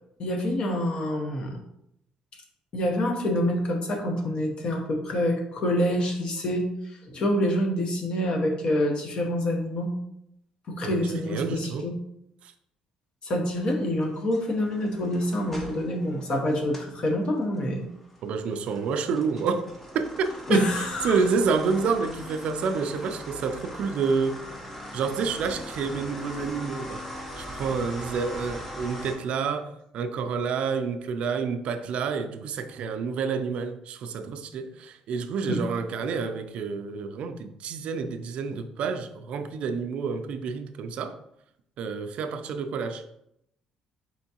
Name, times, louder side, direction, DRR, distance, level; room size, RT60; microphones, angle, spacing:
voice 1, 0.2-1.6 2.7-6.7 7.0-9.9 10.7-11.9 13.2-17.9 20.5-21.2 35.5-35.6, left 1 dB, 40° left, 0.8 m, -26 dB
voice 2, 10.8-11.9 12.4-12.5 18.2-19.7 19.9-24.4 24.9-27.1 27.4-41.2 41.8-43.0, right 5 dB, 55° right, 0.3 m, -29 dB
sound 1, 13.6-17.0 17.4-29.2, equal, 10° left, 0.7 m, -41 dB
4.4 x 3.5 x 2.8 m
cardioid pair, 155°, 2 cm